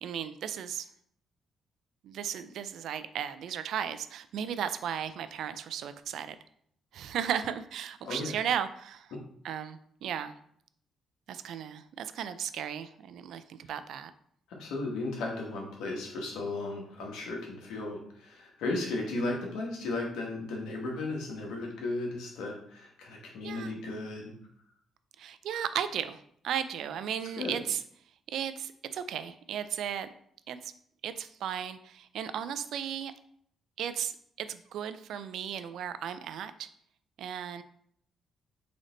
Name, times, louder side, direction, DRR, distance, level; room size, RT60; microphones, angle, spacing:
voice 1, 0.0-0.9 2.0-6.4 6.9-9.1 9.4-10.4 11.3-14.1 23.4-23.7 25.2-27.8 28.3-30.1 30.5-30.7 31.0-33.1 33.8-36.7 37.2-37.6, right 9 dB, 75° right, 12 dB, 0.3 m, -35 dB
voice 2, 14.5-24.3 27.4-27.6, left 2 dB, 90° left, 0 dB, 1.2 m, -35 dB
3.9 x 3.4 x 3.8 m, 0.65 s
cardioid pair, 90°, 0 cm